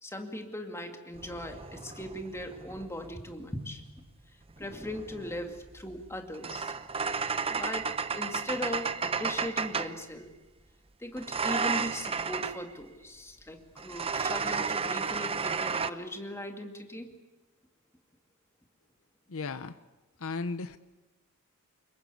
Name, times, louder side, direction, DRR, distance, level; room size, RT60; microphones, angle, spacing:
voice 1, 0.0-3.8 4.6-6.7 7.5-10.3 11.0-17.1, left 1 dB, 10° left, 4 dB, 2.3 m, -39 dB
sound 1, 1.1-3.3 4.5-10.0 11.2-12.6 13.8-15.9, right 5 dB, 25° right, 0.8 m, -33 dB
voice 2, 19.3-19.8 20.2-20.8, left 4 dB, 65° left, 12 dB, 0.8 m, -35 dB
25.5 x 22.0 x 8.5 m, 1.1 s
head